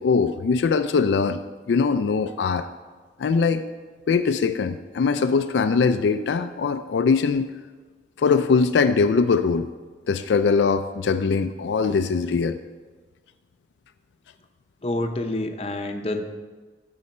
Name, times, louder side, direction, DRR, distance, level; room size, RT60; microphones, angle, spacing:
voice 1, 0.0-1.4 1.7-2.7 3.2-3.6 4.1-7.5 8.2-9.7 10.1-12.6, left 5 dB, 80° left, 9 dB, 0.4 m, -21 dB
voice 2, 14.8-16.2, left 1 dB, 35° left, 5 dB, 0.6 m, -27 dB
12.0 x 5.5 x 4.3 m, 1.4 s
head